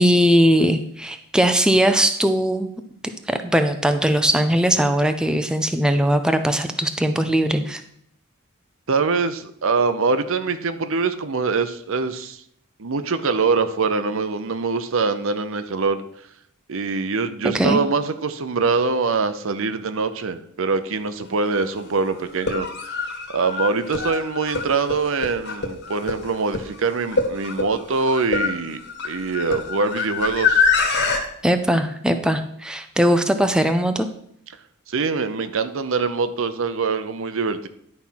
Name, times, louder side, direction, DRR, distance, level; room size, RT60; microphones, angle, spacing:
voice 1, 0.0-2.7 3.3-7.8 17.4-17.8 31.4-34.1, equal, 5° right, 7 dB, 0.5 m, -19 dB
voice 2, 8.9-12.4 12.8-16.0 16.7-30.6 34.9-37.7, right 4 dB, 65° right, 11 dB, 0.7 m, -24 dB
sound 1, 21.2-21.3 22.3-31.2, left 4 dB, 55° left, 1.6 m, -25 dB
10.5 x 4.4 x 5.8 m, 0.69 s
head